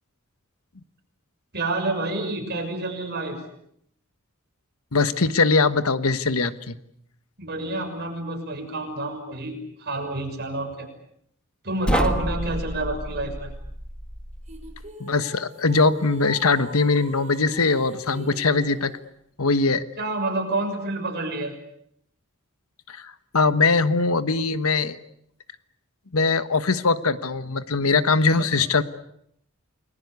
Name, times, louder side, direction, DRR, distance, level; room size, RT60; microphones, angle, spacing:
voice 1, 1.5-3.4 7.4-10.9 11.6-13.5 20.0-21.5 28.4-28.5, right 2 dB, 50° right, 4 dB, 6.5 m, -28 dB
voice 2, 4.9-6.7 15.0-18.9 19.4-19.8 22.9-25.0 26.1-28.8, left 4 dB, 75° left, 13 dB, 1.3 m, -21 dB
sound 1, 11.8-14.9, equal, 5° left, 1.6 m, -29 dB
sound 2, 14.5-19.0, right 2 dB, 35° right, 5.4 m, -41 dB
29.5 x 21.0 x 8.3 m, 0.72 s
head